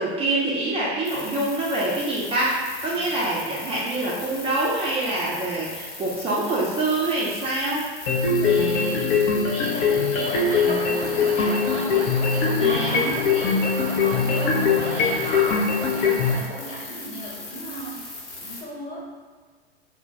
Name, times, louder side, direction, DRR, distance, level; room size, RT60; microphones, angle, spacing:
voice 1, 0.0-7.8 12.6-13.1, right 2 dB, 20° right, -6 dB, 0.4 m, -25 dB
sound 1, 1.0-18.6, left 2 dB, 60° left, 1.0 m, -38 dB
sound 2, 8.1-16.3, left 5 dB, 40° left, 0.5 m, -22 dB
voice 2, 8.4-19.2, equal, 20° left, -6 dB, 1.1 m, -35 dB
sound 3, 10.2-16.4, right 3 dB, 85° right, 0.5 m, -36 dB
2.2 x 2.1 x 3.8 m, 1.5 s
figure-of-eight pair, 85°, 31 cm